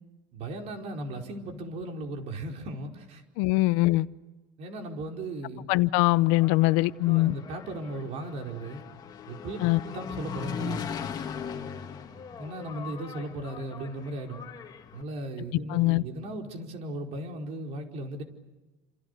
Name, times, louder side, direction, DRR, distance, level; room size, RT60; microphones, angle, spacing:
voice 1, 0.3-3.2 4.6-5.7 7.0-8.8 9.3-10.9 12.4-14.4 14.9-18.2, right 1 dB, 50° right, 2 dB, 4.9 m, -37 dB
voice 2, 3.4-4.1 5.7-7.3 9.6-9.8 15.7-16.0, left 20 dB, 75° left, 16 dB, 0.8 m, -22 dB
Engine, 6.2-15.0, left 7 dB, 30° left, 2.2 m, -39 dB
29.5 x 27.5 x 6.9 m, 1.1 s
cardioid pair, 155°, 14 cm